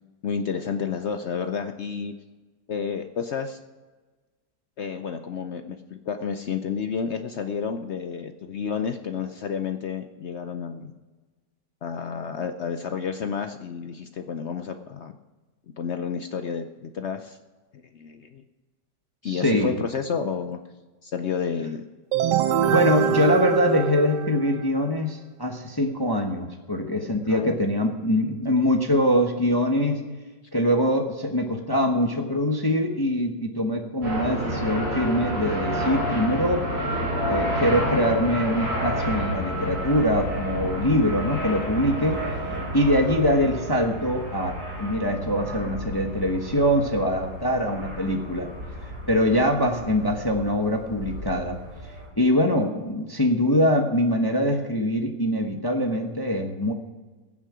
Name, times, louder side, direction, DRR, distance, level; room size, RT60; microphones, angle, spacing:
voice 1, 0.2-2.1 2.7-3.6 4.8-10.9 11.8-15.2 15.8-17.4 17.7-18.4 19.2-20.6 21.0-21.8 27.3-27.6, left 6 dB, 75° left, 7 dB, 0.6 m, -30 dB
voice 2, 19.2-19.8 22.7-30.0 30.5-36.6 37.3-42.2 42.7-44.5 44.8-48.5 49.1-51.6 52.2-56.7, equal, 20° left, 3 dB, 0.8 m, -23 dB
sound 1, 22.1-24.8, right 9 dB, 75° right, 1.3 m, -24 dB
sound 2, 34.0-52.1, equal, 55° right, 5.6 m, -30 dB
21.5 x 7.4 x 4.9 m, 1.3 s
omnidirectional pair, 1.9 m